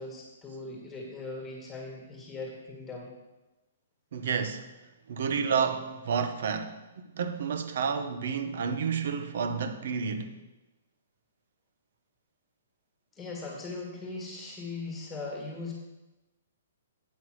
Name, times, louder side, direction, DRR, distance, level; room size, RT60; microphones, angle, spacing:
voice 1, 0.0-3.1 13.2-15.7, left 3 dB, 10° left, 1.8 m, -39 dB
voice 2, 4.1-4.6 5.1-10.4, right 6 dB, 55° right, 0.8 m, -30 dB
8.3 x 5.7 x 6.2 m
hypercardioid pair, 170°, 0 cm